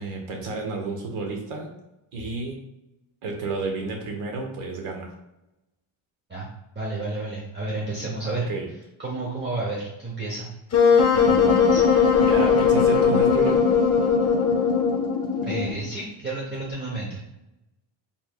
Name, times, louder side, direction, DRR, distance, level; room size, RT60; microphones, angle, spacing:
voice 1, 0.0-1.7 2.1-2.6 3.2-5.1 8.5-8.7 11.1-11.8 12.1-13.6, right 3 dB, 80° right, 2 dB, 1.2 m, -31 dB
voice 2, 6.7-8.5 9.0-10.5 11.7-11.8 15.4-17.2, right 2 dB, 20° right, -4 dB, 0.7 m, -31 dB
Wind instrument woodwind instrument, 10.7-15.8, left 5 dB, 30° left, 0.8 m, -19 dB
4.6 x 3.6 x 2.3 m, 0.92 s
cardioid pair, 145°, 50 cm